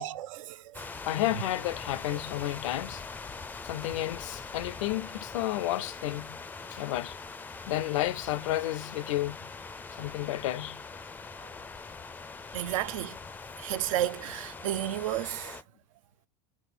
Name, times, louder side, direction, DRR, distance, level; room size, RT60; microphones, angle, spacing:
voice 1, 0.0-0.9 2.1-2.2 11.4-11.5 12.5-13.2 13.6-15.6, right 13 dB, 80° right, 0.5 m, -33 dB
sound 1, 0.7-15.6, left 4 dB, 10° left, 0.4 m, -42 dB
voice 2, 1.0-3.0 3.6-6.4 6.7-7.2 7.7-9.5 9.9-10.8, left 15 dB, 75° left, 0.5 m, -31 dB
9.0 x 6.2 x 6.8 m
supercardioid pair, 130°, 16 cm